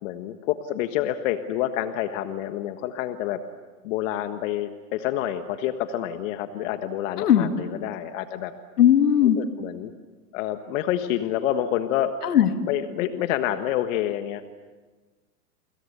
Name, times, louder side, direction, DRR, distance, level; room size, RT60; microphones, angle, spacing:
voice 1, 0.0-3.4 3.8-8.5 9.4-9.9 10.3-12.1 12.7-14.4, left 12 dB, 55° left, 9 dB, 1.6 m, -28 dB
voice 2, 7.2-7.5 8.8-9.4 12.2-12.6, left 10 dB, 75° left, 8 dB, 2.4 m, -18 dB
29.0 x 25.0 x 6.8 m, 1.3 s
hypercardioid pair, 110°, 46 cm